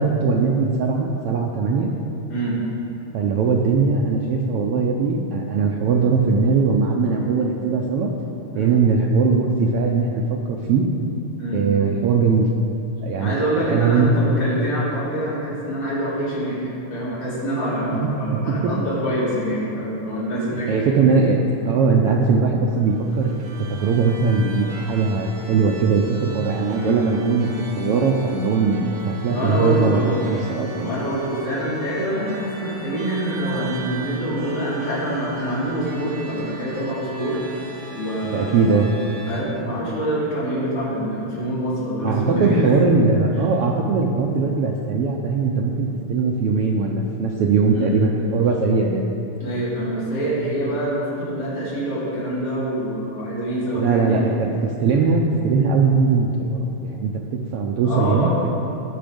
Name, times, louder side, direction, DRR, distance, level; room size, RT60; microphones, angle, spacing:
voice 1, 0.0-1.9 3.1-8.1 8.5-10.9 11.5-12.5 13.0-13.4 13.7-14.3 17.9-18.7 20.5-21.4 21.7-23.4 23.7-27.5 27.8-30.9 38.3-38.9 42.0-49.1 53.7-58.5, right 4 dB, 80° right, 0 dB, 1.3 m, -20 dB
voice 2, 13.2-16.6 16.9-20.9 26.7-27.0 29.2-30.3 30.8-37.7 37.9-38.8 39.3-42.7 43.6-43.7 47.7-48.0 49.4-54.2 57.8-58.4, right 1 dB, 50° left, -10 dB, 4.3 m, -25 dB
sound 1, 22.7-39.4, right 3 dB, 55° right, 2.3 m, -38 dB
17.5 x 6.2 x 5.2 m, 2.8 s
omnidirectional pair, 3.4 m